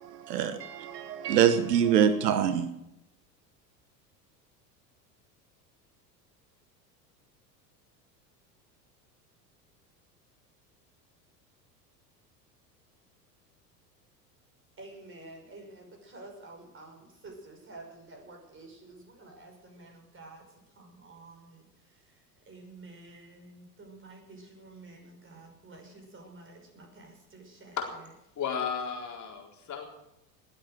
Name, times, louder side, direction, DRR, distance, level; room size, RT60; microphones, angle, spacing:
voice 1, 0.0-2.7, right 9 dB, 75° right, 1.3 m, -25 dB
voice 2, 14.8-27.8, right 2 dB, 25° right, 5.7 m, -50 dB
voice 3, 28.4-29.9, left 7 dB, 35° left, 4.3 m, -33 dB
20.5 x 8.2 x 7.9 m
hypercardioid pair, 80°, 50 cm